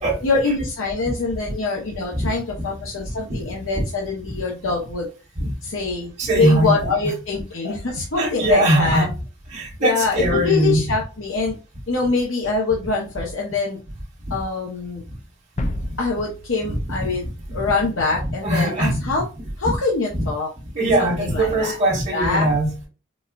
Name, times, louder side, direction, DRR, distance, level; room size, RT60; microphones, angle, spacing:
voice 1, 0.2-5.1 5.6-9.1 9.8-11.6 11.9-13.8 14.3-15.0 16.0-17.2 17.5-19.2 19.6-20.5 21.0-21.8 22.1-22.5, left 3 dB, 70° left, 0.8 m, -24 dB
voice 2, 6.2-7.1 7.6-7.7 8.2-9.1 9.5-10.8 16.7-16.8 18.4-19.1 19.6-19.7 20.1-20.3 20.7-22.9, right 1 dB, 35° right, 1.3 m, -20 dB
sound 1, 15.6-18.1, left 1 dB, 35° left, 0.4 m, -33 dB
4.1 x 2.3 x 2.3 m
head